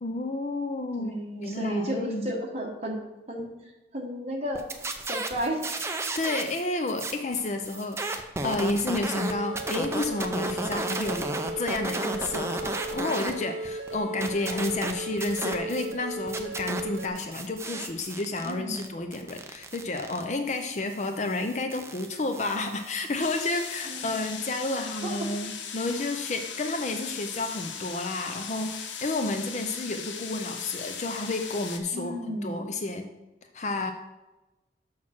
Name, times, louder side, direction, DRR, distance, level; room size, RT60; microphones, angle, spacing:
voice 1, 0.0-1.1 1.4-2.3 6.1-32.1 32.4-33.1 33.5-33.9, left 2 dB, 40° left, 6 dB, 0.5 m, -31 dB
voice 2, 1.0-3.0 3.3-3.5 3.9-4.6 5.1-5.6 18.4-18.9 23.8-25.3 31.9-32.6, equal, 35° right, -1 dB, 1.5 m, -33 dB
sound 1, 4.5-6.6 6.9-13.3 13.6-15.9 16.3-23.8, right 2 dB, 15° right, 0.5 m, -34 dB
sound 2, 9.1-17.1, right 2 dB, 70° right, 1.1 m, -36 dB
sound 3, 23.2-31.8, left 7 dB, 85° left, 0.8 m, -38 dB
6.3 x 6.0 x 6.0 m, 1.1 s
head